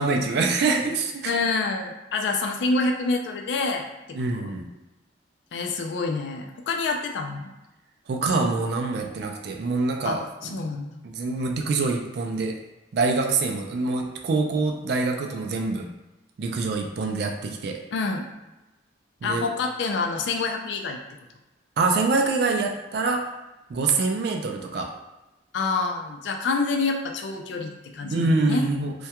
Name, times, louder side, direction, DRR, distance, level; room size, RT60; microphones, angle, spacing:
voice 1, 0.0-1.3 4.1-4.7 8.1-10.6 11.0-12.6 12.9-15.9 16.4-17.8 19.2-19.5 21.8-23.2 23.7-24.9 28.1-28.9, right 3 dB, 55° right, 2 dB, 0.3 m, -25 dB
voice 2, 1.2-4.6 5.5-7.5 10.0-10.2 10.5-11.0 17.9-18.2 19.2-21.0 25.5-28.6, left 3 dB, 65° left, 2 dB, 0.3 m, -27 dB
2.2 x 2.2 x 2.8 m, 1.0 s
head